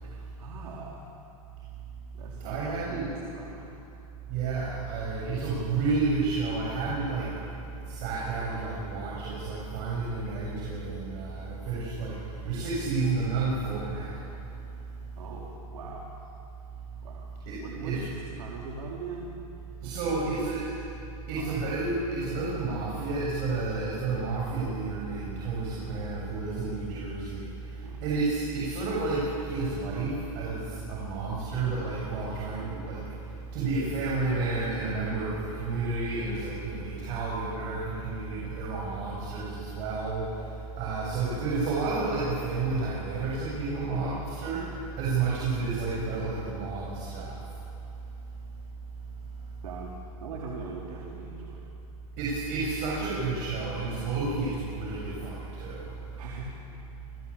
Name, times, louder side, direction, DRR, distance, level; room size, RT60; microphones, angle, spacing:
voice 1, 0.0-1.1 2.1-3.7 15.2-16.1 17.0-17.3 17.6-19.3 19.8-20.5 21.3-21.7 23.6-23.8 27.8-28.0 33.3-33.4 49.6-49.9 50.2-51.7 56.1-56.6, right 4 dB, 80° right, -3 dB, 4.1 m, -41 dB
voice 2, 2.4-3.1 4.3-7.4 7.8-14.6 14.9-15.0 17.5-17.6 17.8-18.0 19.8-20.6 21.3-47.6 49.4-49.5 52.2-56.2, right 3 dB, 50° right, -5 dB, 7.7 m, -31 dB
29.0 x 21.0 x 8.8 m, 2.8 s
supercardioid pair, 135°, 19 cm